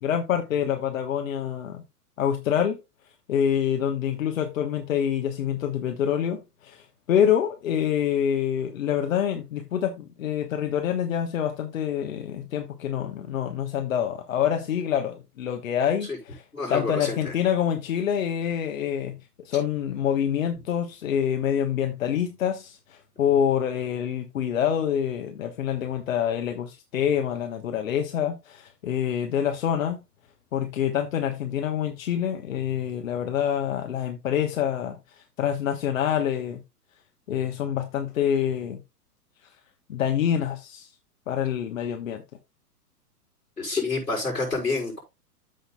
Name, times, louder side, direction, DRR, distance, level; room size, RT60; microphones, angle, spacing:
voice 1, 0.0-1.8 2.2-2.8 3.3-16.4 16.7-19.2 19.4-30.0 30.5-36.6 37.3-38.8 39.9-40.9 41.3-42.2, left 9 dB, 55° left, 1.3 m, -26 dB
voice 2, 16.5-17.3 43.6-45.0, left 3 dB, 85° left, 5.6 m, -28 dB
14.0 x 5.8 x 2.3 m
figure-of-eight pair, 105°, 47 cm